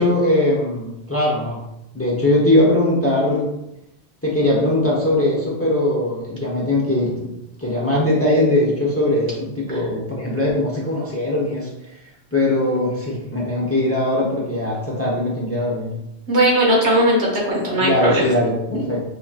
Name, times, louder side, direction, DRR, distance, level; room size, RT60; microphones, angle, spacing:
voice 1, 0.0-1.6 1.9-3.5 4.2-7.3 7.6-11.7 12.3-15.9 17.8-19.0, left 1 dB, 15° left, -5 dB, 0.8 m, -20 dB
voice 2, 16.3-18.3 18.7-18.8, right 1 dB, 85° right, -4 dB, 1.6 m, -18 dB
5.1 x 2.9 x 2.4 m, 0.86 s
omnidirectional pair, 1.1 m